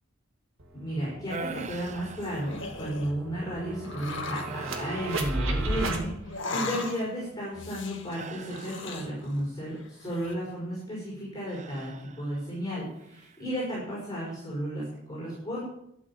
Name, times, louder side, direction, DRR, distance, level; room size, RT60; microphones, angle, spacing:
sound 1, 0.6-0.7 1.0-6.0, right 1 dB, 65° right, 2.1 m, -34 dB
voice 1, 0.7-15.6, equal, 15° left, -7 dB, 5.6 m, -33 dB
sound 2, 1.3-3.0 3.6-3.8 4.4-6.3 8.1-9.4 11.5-12.6 13.0-13.5, right 4 dB, 30° right, 0.6 m, -43 dB
sound 3, 2.0-3.2 3.8-4.6 6.2-7.2 7.5-9.5 9.8-10.3, left 3 dB, 55° left, 1.8 m, -38 dB
12.5 x 7.7 x 8.5 m, 0.77 s
head